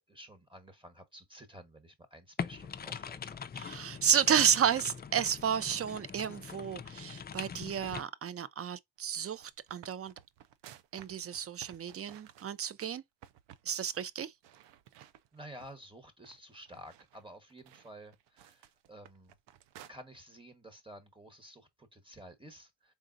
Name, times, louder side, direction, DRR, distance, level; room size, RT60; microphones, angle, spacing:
voice 1, 0.1-3.4 15.3-19.3 19.9-22.9, right 1 dB, 10° right, 1.2 m, -52 dB
sound 1, 2.4-8.0, left 6 dB, 25° left, 0.3 m, -42 dB
voice 2, 3.6-10.1 10.9-13.0 13.6-14.3, right 8 dB, 35° right, 0.5 m, -31 dB
sound 2, 9.1-12.9 13.2-13.7 13.9-14.1 14.4-15.9 16.2-19.9, right 11 dB, 85° right, 0.6 m, -56 dB
3.8 x 3.6 x 2.6 m
cardioid pair, 80°, 42 cm